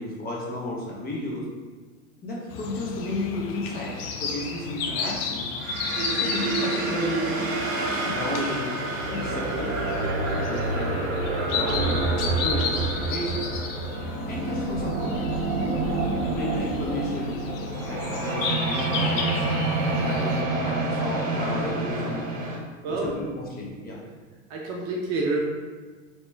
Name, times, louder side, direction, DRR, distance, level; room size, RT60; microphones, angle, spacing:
voice 1, 0.0-1.4 2.2-5.5 6.1-7.3 8.0-8.8 9.1-11.0 11.4-13.5 14.3-15.2 16.3-17.4 17.9-19.4 19.8-22.2 22.8-24.0, left 2 dB, 20° left, -4 dB, 0.8 m, -33 dB
sound 1, 2.5-20.4, left 5 dB, 45° left, 0.5 m, -33 dB
sound 2, 5.6-22.6, right 3 dB, 65° right, 0.9 m, -28 dB
voice 2, 24.5-25.4, right 3 dB, 35° right, -2 dB, 0.6 m, -28 dB
2.9 x 2.9 x 3.3 m, 1.4 s
hypercardioid pair, 110°, 42 cm